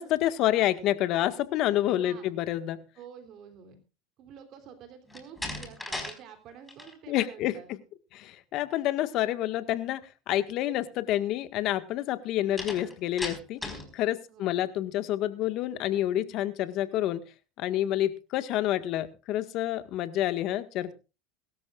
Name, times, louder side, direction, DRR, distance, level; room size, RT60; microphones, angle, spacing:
voice 1, 0.0-2.8 7.1-7.5 8.1-10.0 10.3-17.2 17.6-20.9, left 13 dB, 55° left, 11 dB, 1.7 m, -28 dB
voice 2, 2.0-2.4 2.9-3.8 4.2-7.7 14.3-14.6, right 8 dB, 50° right, 7 dB, 3.4 m, -49 dB
Slam, 5.1-6.2 6.5-6.9 12.6-13.9, left 2 dB, 10° left, 4.5 m, -37 dB
22.5 x 13.0 x 2.5 m, 0.32 s
supercardioid pair, 115°, 0 cm